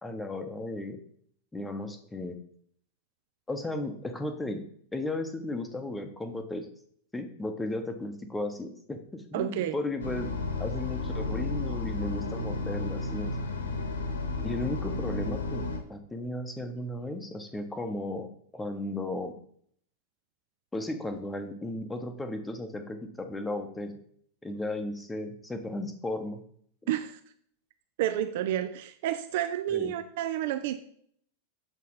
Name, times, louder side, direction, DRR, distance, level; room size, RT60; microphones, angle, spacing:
voice 1, 0.0-1.0 1.5-2.3 3.5-4.6 4.9-6.7 7.1-10.3 10.6-13.3 14.4-19.3 20.7-24.0 24.4-26.4 29.7-30.0, left 1 dB, 10° left, 7 dB, 0.8 m, -35 dB
voice 2, 9.3-9.7 26.9-27.2 28.0-30.8, right 11 dB, 50° right, 10 dB, 0.4 m, -30 dB
sound 1, 10.0-15.8, left 3 dB, 65° left, 1.1 m, -32 dB
7.1 x 4.2 x 4.1 m, 0.62 s
figure-of-eight pair, 90°, 0 cm